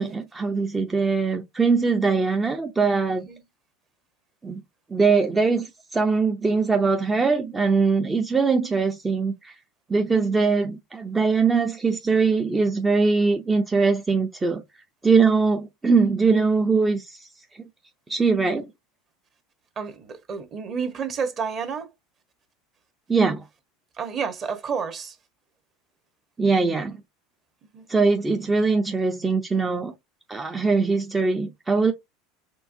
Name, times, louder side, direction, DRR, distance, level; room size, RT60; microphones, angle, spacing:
voice 1, 0.0-3.3 4.4-4.6 4.9-9.6 9.9-14.6 15.0-17.3 17.6-17.7 18.1-18.7 23.1-23.4 26.4-27.0 27.9-29.9 30.3-31.9, right 4 dB, 15° right, 0.5 m, -22 dB
voice 2, 3.1-3.4 19.8-21.9 24.0-25.2 27.7-27.9, right 6 dB, 35° right, 1.1 m, -30 dB
4.5 x 3.4 x 2.6 m
supercardioid pair, 125°, 0 cm